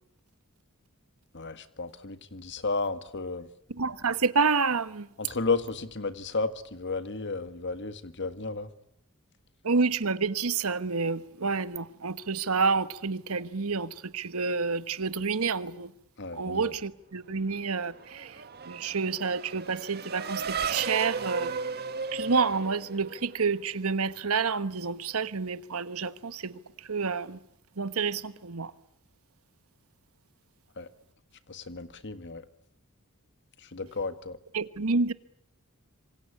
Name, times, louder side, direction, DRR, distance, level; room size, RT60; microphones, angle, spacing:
voice 1, 1.3-3.5 5.2-8.7 16.2-16.7 30.8-30.9 31.5-32.4 33.6-34.4, left 3 dB, 55° left, 1.7 m, -33 dB
voice 2, 3.7-5.1 9.6-15.9 16.3-21.5 22.1-27.4 27.8-28.7 34.5-35.1, right 4 dB, 75° right, 1.2 m, -29 dB
Race car auto racing / Accelerating revving vroom, 17.5-23.6, right 5 dB, 45° right, 1.6 m, -35 dB
27.0 x 24.0 x 8.5 m
head